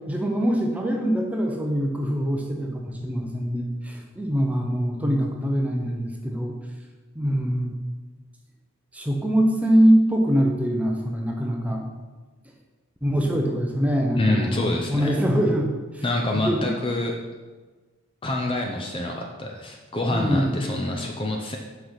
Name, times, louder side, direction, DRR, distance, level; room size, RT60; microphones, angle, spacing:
voice 1, 0.1-6.6 7.1-7.8 8.9-11.9 13.0-14.6 14.9-15.7 15.9-16.0 16.3-16.7 20.1-20.7, equal, 5° right, 1 dB, 0.8 m, -23 dB
voice 2, 14.2-15.2 16.0-17.1 18.2-21.6, left 2 dB, 25° left, 2 dB, 0.6 m, -26 dB
5.8 x 5.5 x 5.8 m, 1.3 s
head